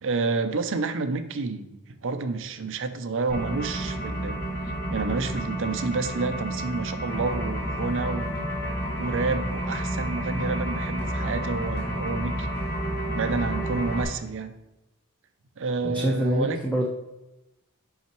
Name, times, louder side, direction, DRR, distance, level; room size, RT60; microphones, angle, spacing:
voice 1, 0.0-4.4 4.9-8.5 9.0-12.5 13.1-14.5 15.6-16.6, right 4 dB, 60° right, 9 dB, 0.6 m, -29 dB
sound 1, 3.3-14.0, right 1 dB, 50° left, 2.2 m, -30 dB
voice 2, 15.8-16.9, right 1 dB, 5° left, -1 dB, 0.7 m, -25 dB
5.7 x 5.6 x 4.5 m, 0.98 s
head